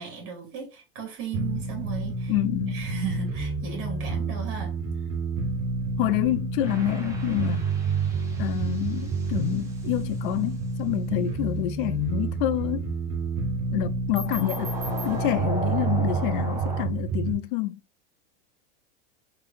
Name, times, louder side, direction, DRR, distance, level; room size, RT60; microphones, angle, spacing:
voice 1, 0.0-2.3 2.7-4.7, right 6 dB, 40° right, 2.0 m, -36 dB
sound 1, 1.3-17.3, right 4 dB, 65° right, 1.5 m, -29 dB
voice 2, 2.3-2.8 6.0-7.7 8.4-12.9 13.7-14.7 15.0-17.8, left 14 dB, 55° left, 0.5 m, -27 dB
sound 2, 6.6-10.2 14.1-16.9, right 1 dB, 10° right, 0.7 m, -37 dB
3.8 x 3.2 x 2.5 m
supercardioid pair, 155°, 32 cm